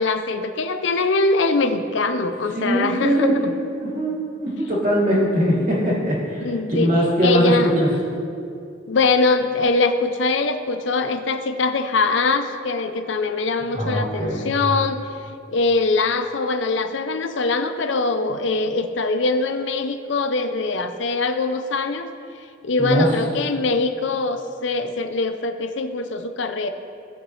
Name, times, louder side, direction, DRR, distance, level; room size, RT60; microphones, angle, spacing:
voice 1, 0.0-3.3 6.4-6.9 7.2-7.7 8.9-15.1 15.5-22.1 22.6-26.7, left 3 dB, 70° left, 8 dB, 0.6 m, -22 dB
voice 2, 2.5-7.9 13.7-14.5 22.8-23.1, equal, 40° right, -6 dB, 2.6 m, -21 dB
17.0 x 6.0 x 3.2 m, 2.5 s
head